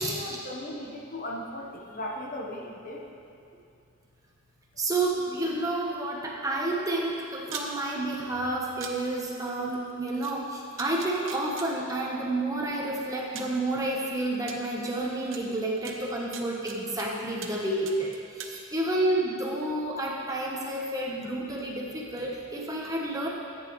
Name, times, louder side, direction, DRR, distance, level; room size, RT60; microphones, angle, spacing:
voice 1, 0.0-3.0, left 1 dB, 40° left, -1 dB, 1.1 m, -37 dB
voice 2, 4.8-23.3, right 2 dB, 15° right, -2 dB, 1.0 m, -30 dB
sound 1, 7.4-7.7 8.8-8.9 10.2-10.3 10.8-11.7 12.7-12.8 13.4-13.6 14.5-14.6 15.3-15.4 15.9-17.1 17.4-17.6 17.9-18.5, right 7 dB, 70° right, 0.9 m, -40 dB
14.5 x 9.0 x 3.1 m, 2.6 s
head